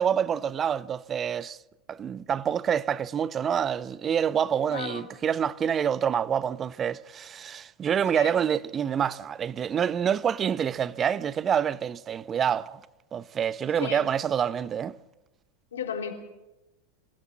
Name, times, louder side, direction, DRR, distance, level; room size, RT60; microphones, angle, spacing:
voice 1, 0.0-1.6 1.9-12.8 13.1-14.9, right 8 dB, 30° right, 0.7 m, -27 dB
voice 2, 4.7-5.0 8.1-8.3 13.8-14.0 15.7-16.1, left 8 dB, 80° left, 3.3 m, -34 dB
26.5 x 16.0 x 7.4 m
hypercardioid pair, 95°, 0 cm